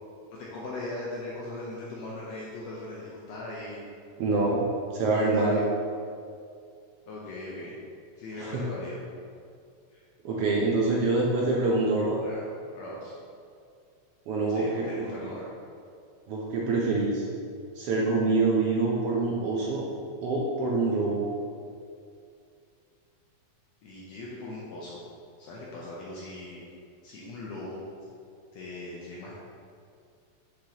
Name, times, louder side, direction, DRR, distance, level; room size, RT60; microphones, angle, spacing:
voice 1, 0.3-3.9 5.2-5.7 7.1-7.8 8.2-9.0 9.9-10.0 12.2-12.4 12.7-13.1 14.5-15.5 23.8-25.0 25.4-26.6 27.0-27.8 28.5-29.4, left 2 dB, 75° left, -5 dB, 1.8 m, -39 dB
voice 2, 4.2-4.6 4.9-5.6 8.4-8.6 10.2-12.2 14.3-14.8 16.3-17.2 17.7-19.9 20.2-21.3, right 3 dB, 80° right, -3 dB, 1.3 m, -25 dB
6.4 x 6.1 x 2.8 m, 2.3 s
omnidirectional pair, 3.4 m